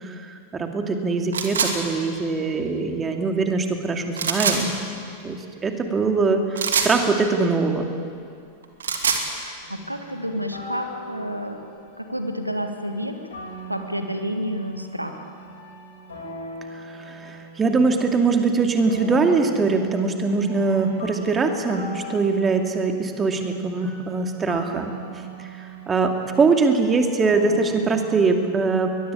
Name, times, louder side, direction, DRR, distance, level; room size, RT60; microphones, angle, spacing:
voice 1, 0.0-4.7 5.2-7.9 16.7-29.1, right 4 dB, 20° right, 4 dB, 2.5 m, -22 dB
sound 1, 1.3-1.7 4.1-4.6 6.6-6.9 8.6-9.2, right 6 dB, 65° right, 2.7 m, -23 dB
voice 2, 9.0-11.6 12.0-13.2 13.7-15.3, equal, 85° right, 6 dB, 1.7 m, -30 dB
sound 2, 9.6-28.2, equal, 70° left, 7.4 m, -40 dB
22.5 x 21.5 x 8.6 m, 2.4 s
figure-of-eight pair, 90°, 0 cm